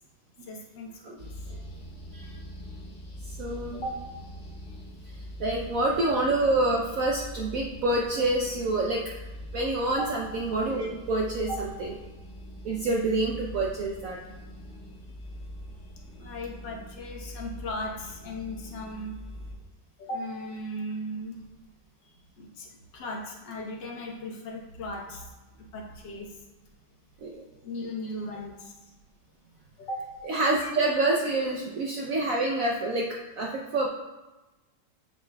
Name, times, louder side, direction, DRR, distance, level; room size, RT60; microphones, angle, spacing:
voice 1, 0.4-1.3 2.2-2.3 3.7-4.0 9.9-10.1 11.5-11.6 16.2-19.2 20.0-21.5 22.0-22.1 22.4-26.4 27.6-28.9 29.8-30.1, left 1 dB, 70° left, -1 dB, 1.7 m, -37 dB
sound 1, 1.2-19.5, equal, 40° left, 1.4 m, -43 dB
voice 2, 3.4-3.8 5.4-9.0 9.5-11.5 11.8-11.9 12.6-14.2 27.2-27.4 30.3-33.9, right 2 dB, 70° right, -1 dB, 0.8 m, -27 dB
7.8 x 6.9 x 2.2 m, 1.1 s
omnidirectional pair, 2.0 m